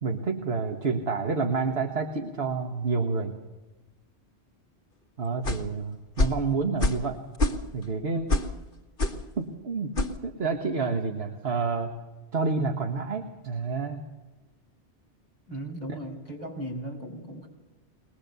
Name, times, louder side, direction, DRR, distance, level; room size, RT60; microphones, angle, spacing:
voice 1, 0.0-3.4 5.2-7.2 7.7-8.3 9.4-9.9 10.2-12.0 12.3-14.1, right 4 dB, 65° right, 3 dB, 1.7 m, -29 dB
sound 1, 5.4-5.7 6.2-6.4 6.8-7.1 7.3-7.8 8.3-8.6 9.0-9.2 10.0-10.2, left 2 dB, 55° left, 1.8 m, -25 dB
voice 2, 15.5-17.5, right 1 dB, 40° right, 1 dB, 5.7 m, -37 dB
22.0 x 20.5 x 6.8 m, 1.1 s
omnidirectional pair, 1.1 m